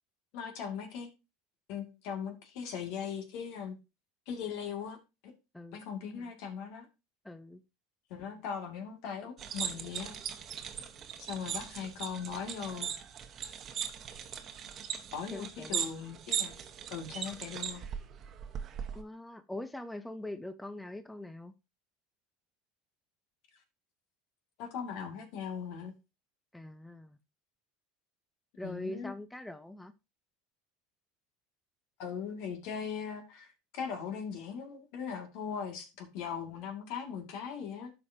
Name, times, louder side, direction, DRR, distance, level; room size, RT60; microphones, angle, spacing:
voice 1, 0.3-1.1 1.7-3.8 4.3-5.0 5.2-5.3 5.7-6.9 8.1-10.2 11.3-12.9 15.1-16.6 16.9-17.8 24.6-25.9 28.6-29.1 32.0-37.9, left 7 dB, 65° left, 2.2 m, -39 dB
voice 2, 7.2-7.6 15.3-15.9 18.9-21.5 26.5-27.2 28.6-29.9, left 1 dB, 5° left, 0.6 m, -43 dB
sound 1, 9.4-19.0, right 8 dB, 40° right, 1.2 m, -39 dB
13.0 x 4.9 x 2.8 m
hypercardioid pair, 90°, 0 cm